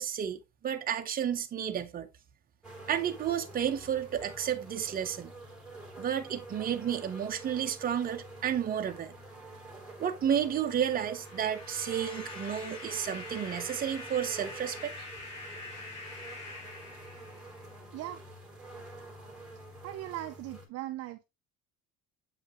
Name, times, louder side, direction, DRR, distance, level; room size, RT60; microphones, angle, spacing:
voice 1, 0.0-2.1 2.9-5.3 6.0-9.1 10.0-14.9, right 9 dB, 25° right, 0.8 m, -32 dB
sound 1, 2.6-20.7, right 2 dB, ahead, 3.0 m, -48 dB
sound 2, 10.7-17.8, left 3 dB, 65° left, 4.5 m, -45 dB
voice 2, 19.8-21.2, right 14 dB, 45° right, 0.5 m, -39 dB
7.8 x 5.1 x 3.0 m
cardioid pair, 170°, 35 cm